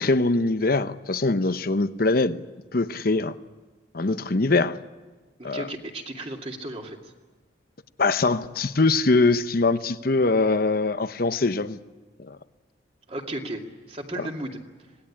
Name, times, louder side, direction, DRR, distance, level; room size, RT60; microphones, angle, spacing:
voice 1, 0.0-2.4 2.7-3.3 3.9-4.8 5.4-5.7 8.0-11.8 12.3-12.4 14.2-14.3, left 3 dB, 55° left, 0.9 m, -22 dB
voice 2, 5.4-7.1 13.1-13.6 13.9-14.6, right 1 dB, 35° right, 2.6 m, -34 dB
26.5 x 19.0 x 8.7 m
head